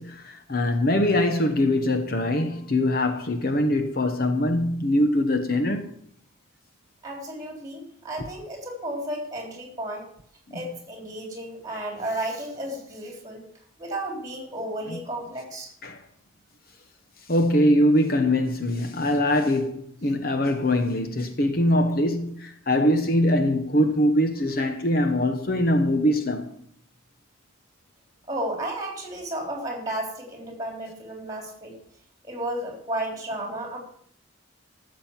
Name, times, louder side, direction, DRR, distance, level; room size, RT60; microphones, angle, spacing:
voice 1, 0.0-5.9 10.5-10.6 15.8-16.0 17.3-26.5, left 1 dB, 45° left, 1.0 m, -23 dB
voice 2, 7.0-10.1 10.5-13.4 13.8-15.7 28.3-31.7 32.2-33.8, right 1 dB, 15° right, 3.6 m, -33 dB
13.5 x 7.5 x 7.4 m
head